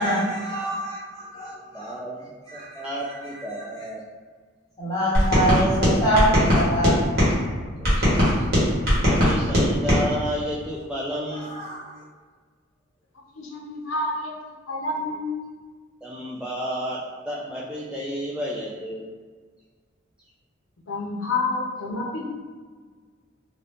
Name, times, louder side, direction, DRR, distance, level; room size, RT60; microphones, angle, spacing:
voice 1, 0.0-2.0 2.5-3.2 3.5-3.9 4.8-7.0 11.3-11.8, equal, 20° left, -8 dB, 1.0 m, -25 dB
voice 2, 1.7-4.0 7.9-8.4 9.0-11.5 16.0-19.0, equal, 5° right, -7 dB, 0.3 m, -32 dB
sound 1, 5.1-7.3 7.8-10.0, equal, 55° right, 1.4 m, -19 dB
voice 3, 13.4-14.3 14.7-15.3 20.9-22.2, left 2 dB, 80° left, -2 dB, 0.7 m, -28 dB
2.6 x 2.6 x 3.4 m, 1.5 s
head